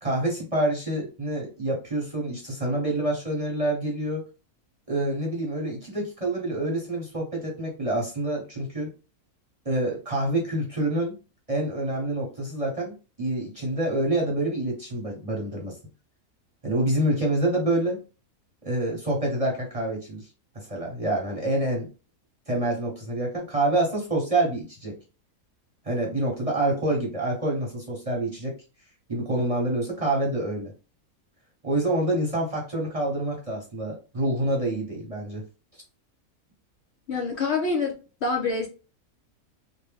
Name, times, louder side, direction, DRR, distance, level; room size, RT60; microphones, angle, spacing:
voice 1, 0.0-4.2 4.9-8.9 9.6-11.2 11.5-15.8 16.6-18.0 18.6-20.2 20.5-21.9 22.5-25.0 25.9-28.6 29.1-30.7 31.6-35.4, right 1 dB, 30° right, 0.8 m, -27 dB
voice 2, 37.1-38.0 38.2-38.7, left 4 dB, 60° left, 0.8 m, -26 dB
3.2 x 2.1 x 3.4 m
omnidirectional pair, 1.5 m